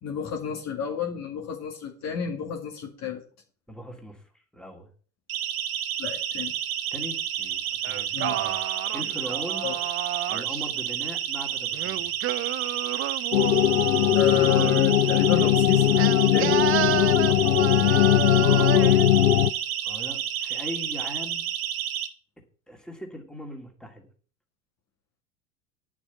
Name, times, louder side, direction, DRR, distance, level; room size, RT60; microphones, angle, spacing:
voice 1, 0.0-3.2 6.0-6.5 8.1-8.4 9.6-9.8 14.1-16.6, left 7 dB, 35° left, 2 dB, 2.0 m, -31 dB
voice 2, 3.7-4.9 6.9-8.6 8.9-9.7 10.3-12.1 17.0-17.5 17.8-18.9 19.8-21.5 22.7-24.1, equal, ahead, 2 dB, 2.6 m, -40 dB
Siren, 5.3-22.1, right 10 dB, 70° right, 1.4 m, -30 dB
Singing, 7.8-10.7 11.7-14.9 16.0-19.1, right 14 dB, 30° right, 0.6 m, -31 dB
sound 1, 13.3-19.5, left 13 dB, 75° left, 0.6 m, -20 dB
9.8 x 6.1 x 8.3 m, 0.44 s
figure-of-eight pair, 80°, 44 cm